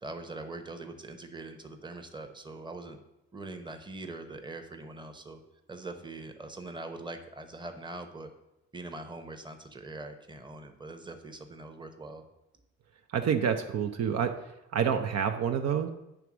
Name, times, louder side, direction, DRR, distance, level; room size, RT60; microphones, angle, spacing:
voice 1, 0.0-3.0 3.3-5.4 5.7-8.3 8.7-12.2, right 2 dB, 15° right, 6 dB, 0.9 m, -42 dB
voice 2, 13.1-14.3 14.7-15.9, right 7 dB, 60° right, 6 dB, 0.6 m, -28 dB
9.1 x 3.5 x 6.1 m, 0.92 s
cardioid pair, 90°, 30 cm